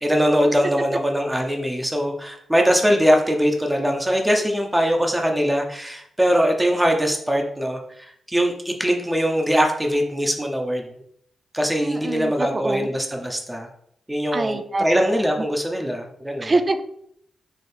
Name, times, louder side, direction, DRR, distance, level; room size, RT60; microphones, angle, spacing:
voice 1, 0.0-10.8 11.5-13.7 14.1-16.5, equal, 10° right, 2 dB, 0.8 m, -22 dB
voice 2, 11.8-12.9 14.3-14.8 16.4-16.8, right 2 dB, 40° right, 9 dB, 0.4 m, -24 dB
4.4 x 3.1 x 3.4 m, 0.70 s
supercardioid pair, 50°, 0 cm